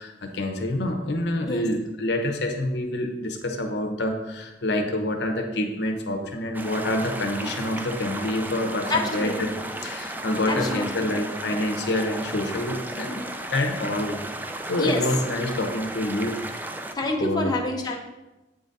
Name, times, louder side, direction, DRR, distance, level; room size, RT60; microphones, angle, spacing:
voice 1, 0.0-9.5 9.8-13.2 13.5-14.2 14.7-16.4 17.2-17.5, left 1 dB, 70° left, 4 dB, 0.8 m, -27 dB
sound 1, 6.5-16.9, right 1 dB, 10° right, 0.4 m, -34 dB
voice 2, 8.9-9.6 10.5-11.2 14.8-15.0 16.9-17.9, left 2 dB, 25° left, -1 dB, 0.8 m, -27 dB
8.1 x 3.9 x 4.0 m, 1.0 s
head